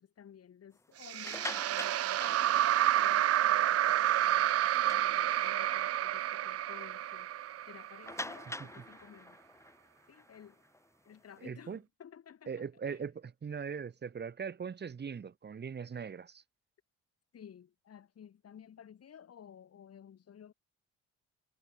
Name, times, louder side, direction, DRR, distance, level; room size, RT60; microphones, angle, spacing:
voice 1, 0.0-7.3 7.6-9.4 10.1-10.6 11.0-13.0 17.3-20.5, left 8 dB, 55° left, 2.7 m, -55 dB
sound 1, 1.0-8.3, right 12 dB, 55° right, 0.5 m, -29 dB
sound 2, 1.1-3.2 3.7-3.8 4.2-4.3 4.7-5.7 6.2-6.3 6.7-6.8 8.0-11.4, left 1 dB, 10° left, 3.1 m, -45 dB
voice 2, 11.4-11.8 12.5-16.4, right 6 dB, 35° right, 1.3 m, -40 dB
cardioid pair, 90°, 30 cm